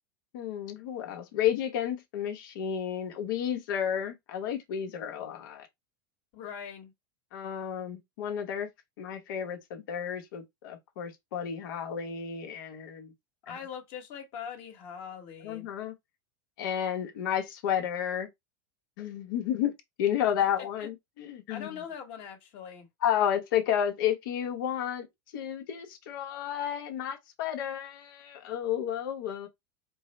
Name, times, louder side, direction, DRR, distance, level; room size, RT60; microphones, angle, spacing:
voice 1, 0.3-5.7 7.3-8.7 9.0-13.1 13.5-13.6 15.4-15.9 16.6-18.3 19.0-19.7 20.0-21.8 23.0-25.1 25.3-29.5, left 9 dB, 75° left, 1.1 m, -31 dB
voice 2, 6.3-6.9 13.5-15.7 20.8-20.9 21.5-22.9, left 7 dB, 55° left, 1.5 m, -41 dB
4.5 x 2.1 x 4.2 m
supercardioid pair, 130°, 11 cm